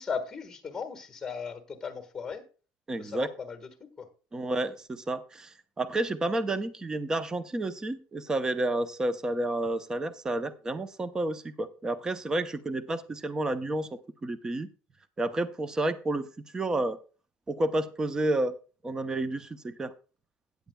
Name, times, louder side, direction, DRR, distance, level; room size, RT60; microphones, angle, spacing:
voice 1, 0.0-2.4 3.0-3.6 4.0-4.1, left 6 dB, 15° left, 8 dB, 1.4 m, -36 dB
voice 2, 2.9-3.3 4.3-13.9 14.2-14.7 15.2-16.3 16.5-17.0 17.5-18.6 18.8-19.9, right 2 dB, 15° right, 13 dB, 0.6 m, -30 dB
16.0 x 9.2 x 2.2 m, 0.35 s
cardioid pair, 155°, 5 cm